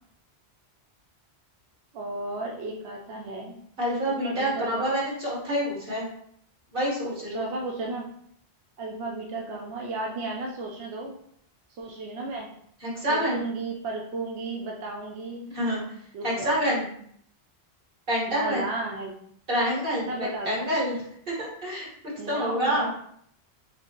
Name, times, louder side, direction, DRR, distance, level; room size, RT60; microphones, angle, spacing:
voice 1, 1.9-3.6 4.1-4.9 7.3-8.1 8.8-11.1 11.7-12.5 13.1-15.5 16.1-16.5 18.3-19.1 20.1-20.7 22.2-22.9, right 2 dB, 90° right, -1 dB, 0.9 m, -34 dB
voice 2, 3.8-6.1 6.7-7.5 12.8-13.4 15.5-15.8 16.2-16.9 18.1-18.7 19.5-22.9, equal, 55° right, -5 dB, 1.7 m, -27 dB
6.1 x 2.0 x 2.9 m, 0.67 s
omnidirectional pair, 1.1 m